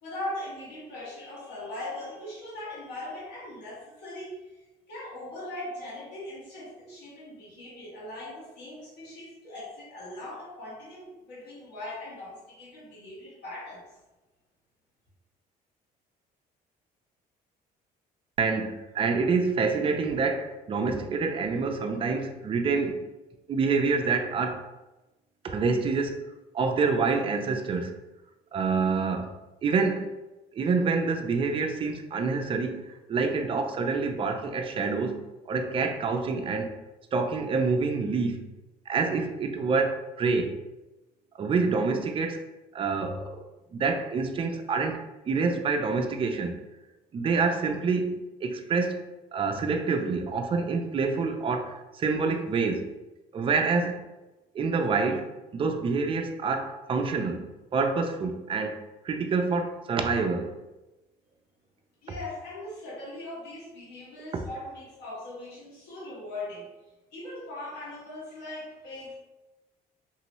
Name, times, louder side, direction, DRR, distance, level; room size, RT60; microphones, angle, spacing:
voice 1, 0.0-13.9 62.0-66.7 67.1-69.1, left 1 dB, 85° left, -7 dB, 1.4 m, -40 dB
voice 2, 18.4-23.0 23.5-24.6 25.4-26.2 26.5-28.0 28.5-29.3 29.6-30.1 30.5-35.2 35.5-36.7 37.1-38.4 38.9-40.6 41.4-42.4 42.7-43.4 43.7-45.0 45.3-46.6 47.1-48.2 48.4-49.0 49.3-52.9 53.3-54.0 54.5-55.3 55.5-58.8 59.0-60.6 64.3-64.4, right 4 dB, 30° right, 5 dB, 0.4 m, -27 dB
3.0 x 2.7 x 3.0 m, 1.1 s
cardioid pair, 110°, 17 cm